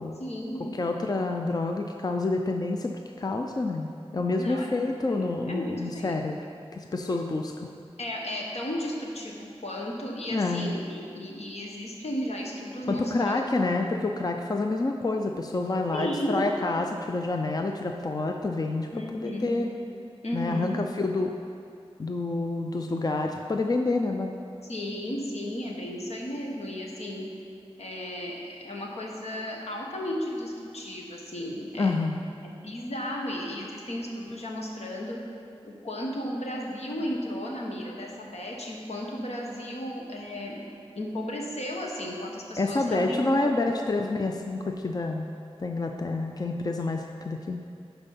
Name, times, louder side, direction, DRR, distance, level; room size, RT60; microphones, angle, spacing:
voice 1, 0.2-0.8 4.4-4.8 5.1-6.1 8.0-13.8 15.9-16.5 18.9-19.7 20.2-20.8 24.7-27.3 27.8-31.9 32.4-35.2 35.6-40.6 40.9-43.9, left 1 dB, 80° left, -2 dB, 1.3 m, -34 dB
voice 2, 0.7-6.4 6.7-7.7 10.3-10.7 12.9-18.9 19.2-19.7 20.3-21.3 22.0-24.3 31.8-32.2 42.6-45.3 45.6-47.6, left 2 dB, 35° left, 3 dB, 0.4 m, -28 dB
10.5 x 4.6 x 5.7 m, 2.5 s
wide cardioid pair, 70°, 11 cm